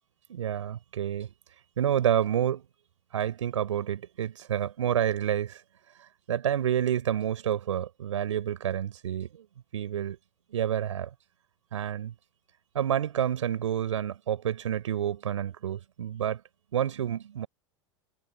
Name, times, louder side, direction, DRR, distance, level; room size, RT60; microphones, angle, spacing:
voice 1, 0.3-1.3 1.8-2.6 3.1-5.6 6.3-9.5 9.7-10.2 10.5-11.1 11.7-12.1 12.7-16.4 16.7-17.5, right 10 dB, 75° right, 4.4 m, -29 dB
hypercardioid pair, 85°, 16 cm